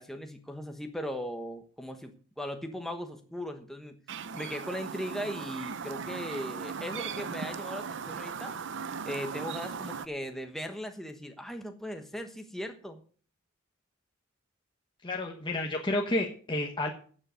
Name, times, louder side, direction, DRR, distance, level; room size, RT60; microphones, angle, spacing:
voice 1, 0.0-8.5 9.0-13.0, equal, ahead, 5 dB, 1.1 m, -38 dB
Chirp tweet, 4.1-10.1, right 6 dB, 65° right, 0.7 m, -38 dB
voice 2, 15.0-16.9, left 1 dB, 25° left, 1 dB, 1.2 m, -30 dB
12.0 x 7.6 x 6.3 m, 0.43 s
head